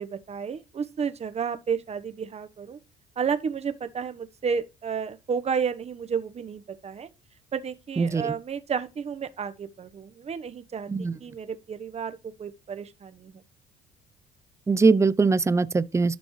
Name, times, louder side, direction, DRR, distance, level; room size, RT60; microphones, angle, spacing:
voice 1, 0.0-2.8 3.2-7.1 7.5-13.4, right 6 dB, 40° right, 1.1 m, -32 dB
voice 2, 8.0-8.3 10.9-11.1 14.7-16.1, right 4 dB, 15° right, 0.6 m, -21 dB
12.5 x 5.2 x 3.2 m
cardioid pair, 90°, 18 cm